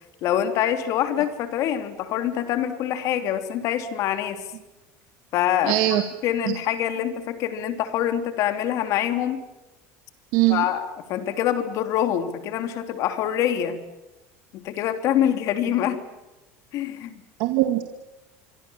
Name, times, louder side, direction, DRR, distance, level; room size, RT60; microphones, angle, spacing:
voice 1, 0.2-4.4 5.3-9.4 10.5-13.8 14.5-16.0 16.7-17.2, left 10 dB, 50° left, 8 dB, 3.2 m, -25 dB
voice 2, 5.6-6.0 6.5-6.6 10.3-10.7 17.4-17.8, right 16 dB, 65° right, 6 dB, 2.1 m, -21 dB
25.5 x 25.0 x 7.3 m, 1.1 s
cardioid pair, 155°, 7 cm